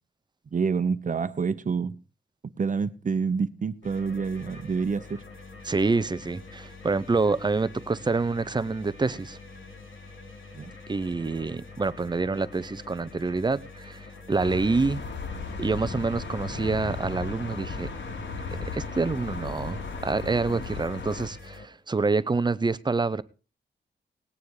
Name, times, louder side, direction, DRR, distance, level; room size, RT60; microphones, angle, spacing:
voice 1, 0.5-1.9 2.6-5.2 10.5-10.7, right 5 dB, 40° right, 0.9 m, -27 dB
sound 1, 3.8-21.7, left 3 dB, 90° left, 3.2 m, -46 dB
voice 2, 5.6-9.4 10.9-15.0 15.6-17.9 18.7-23.2, right 3 dB, 20° right, 0.6 m, -27 dB
sound 2, 14.4-21.3, left 4 dB, 70° left, 2.3 m, -35 dB
19.0 x 9.4 x 4.9 m
wide cardioid pair, 170°, 20 cm